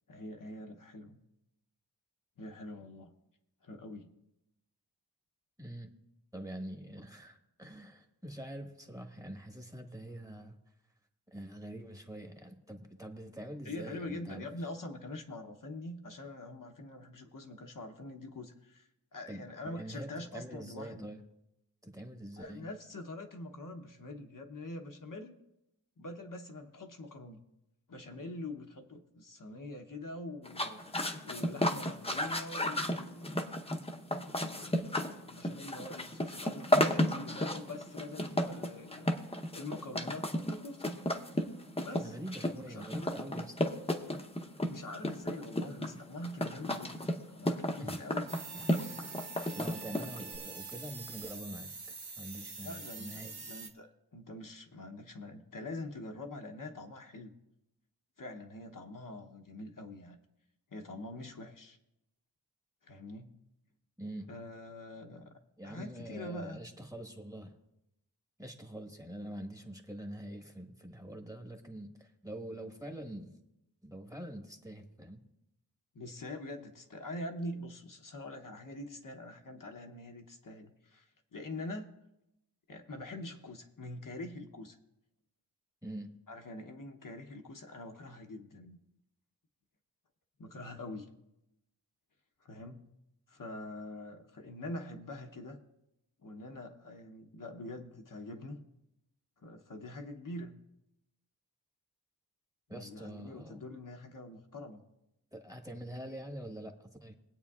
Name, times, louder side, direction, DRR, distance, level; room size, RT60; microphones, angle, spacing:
voice 1, 0.1-1.2 2.4-3.1 3.6-4.1 13.6-21.1 22.4-25.4 26.0-27.4 27.9-30.8 31.2-33.6 34.4-39.1 39.5-40.9 41.8-42.1 42.6-43.2 44.7-47.0 47.3-48.3 52.6-57.3 58.2-60.2 60.7-61.8 62.8-63.4 64.3-65.4 65.6-66.6 75.9-81.9 82.7-84.8 86.3-88.8 90.4-91.1 92.4-92.8 93.3-95.6 96.2-98.6 99.4-100.5 102.7-104.8, left 2 dB, 55° left, 3 dB, 0.9 m, -44 dB
voice 2, 5.6-5.9 6.3-10.6 11.3-14.7 19.3-21.2 21.8-22.7 42.0-43.6 47.8-48.1 48.5-49.1 49.5-53.3 64.0-64.3 65.6-67.5 68.4-73.3 73.8-75.2 85.8-86.1 102.7-103.6 105.3-107.1, right 1 dB, 10° right, 3 dB, 1.2 m, -45 dB
sound 1, 30.4-50.3, left 1 dB, 15° left, 0.8 m, -33 dB
sound 2, 48.3-53.7, right 4 dB, 70° right, 1.1 m, -45 dB
22.5 x 8.6 x 2.4 m, 0.88 s
wide cardioid pair, 90°, 40 cm